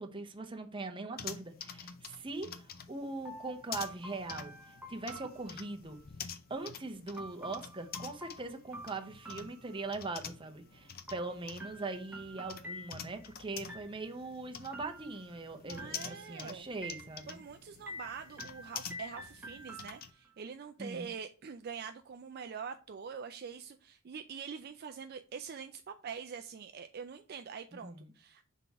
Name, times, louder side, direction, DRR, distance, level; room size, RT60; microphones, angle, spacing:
voice 1, 0.0-6.0 6.5-17.4 20.8-21.1 27.7-28.1, right 3 dB, 25° right, 0.7 m, -41 dB
sound 1, 1.2-20.1, left 7 dB, 45° left, 0.5 m, -48 dB
sound 2, 3.2-6.0 7.2-10.2 11.1-13.3 13.7-14.3 14.7-15.4 15.8-16.4 16.8-17.5 17.9-20.3, equal, 10° right, 1.2 m, -49 dB
voice 2, 15.6-16.7 17.3-28.4, right 6 dB, 45° right, 0.4 m, -44 dB
5.9 x 3.6 x 4.5 m
head